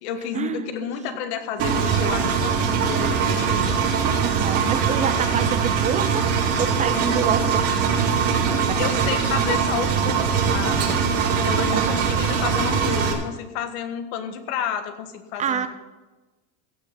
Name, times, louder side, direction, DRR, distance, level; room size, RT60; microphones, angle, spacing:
voice 1, 0.0-3.7 8.7-11.0 11.3-15.7, left 8 dB, 65° left, 8 dB, 1.6 m, -31 dB
Engine, 1.6-13.1, right 6 dB, 45° right, 2.3 m, -22 dB
voice 2, 4.2-9.0 11.7-12.0 15.4-15.7, right 8 dB, 20° right, 11 dB, 0.4 m, -28 dB
15.5 x 6.8 x 5.8 m, 1.2 s
supercardioid pair, 135°, 34 cm